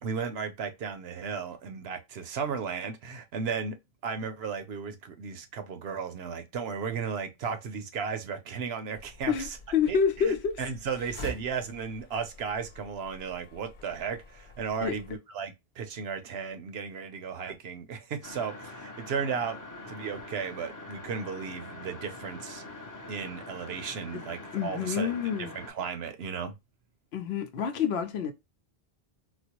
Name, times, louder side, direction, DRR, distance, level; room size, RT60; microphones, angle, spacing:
voice 1, 0.0-9.5 9.9-19.6 19.9-22.6 23.1-25.1 25.4-26.5, right 6 dB, 80° right, 0.9 m, -35 dB
sound 1, 9.0-15.2, left 1 dB, 55° left, 0.8 m, -47 dB
voice 2, 9.3-10.6 14.8-15.0 24.1-24.2 24.5-25.5 27.1-28.3, left 7 dB, 85° left, 0.9 m, -28 dB
sound 2, 18.2-25.7, left 2 dB, 25° left, 0.5 m, -44 dB
4.2 x 2.0 x 2.9 m
omnidirectional pair, 1.0 m